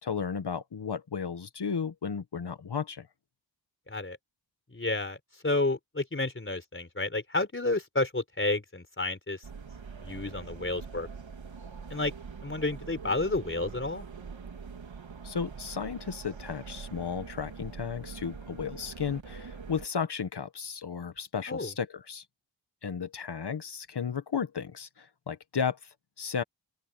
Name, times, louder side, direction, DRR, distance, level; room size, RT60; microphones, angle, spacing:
voice 1, 0.0-3.1 15.2-22.2 22.8-26.4, left 6 dB, 60° left, 1.4 m, -34 dB
voice 2, 3.9-4.2 4.7-5.2 5.4-9.4 10.0-11.1 11.9-12.1 12.4-14.1 21.5-21.7, left 2 dB, 25° left, 4.2 m, -30 dB
sound 1, 9.4-19.9, right 5 dB, 80° right, 2.9 m, -44 dB
open air
wide cardioid pair, 85°, 45 cm